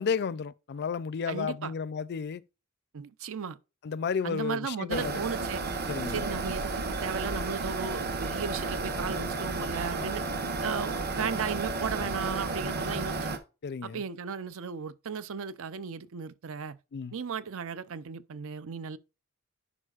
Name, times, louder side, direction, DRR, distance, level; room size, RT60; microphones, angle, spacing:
voice 1, 0.0-2.4 3.8-5.1 5.9-6.3 13.6-14.0 16.9-17.1, left 6 dB, 50° left, 0.4 m, -32 dB
voice 2, 1.3-1.7 2.9-3.6 4.2-5.6 6.1-10.2 10.6-13.3 13.8-16.8 17.1-19.0, right 6 dB, 65° right, 0.5 m, -35 dB
sound 1, 4.9-13.4, right 3 dB, 50° right, 1.1 m, -32 dB
11.0 x 5.0 x 2.4 m
head